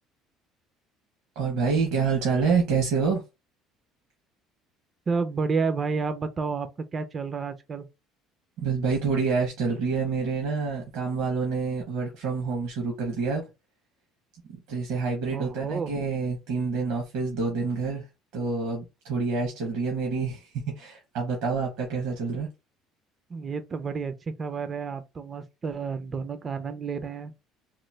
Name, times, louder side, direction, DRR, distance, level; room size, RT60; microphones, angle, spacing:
voice 1, 1.3-3.2 8.6-13.4 14.5-18.0 18.3-22.5, right 4 dB, 75° right, 1.0 m, -27 dB
voice 2, 5.1-7.9 15.3-15.9 23.3-27.3, right 5 dB, 35° right, 0.5 m, -30 dB
3.0 x 2.1 x 3.2 m
supercardioid pair, 85°, 0 cm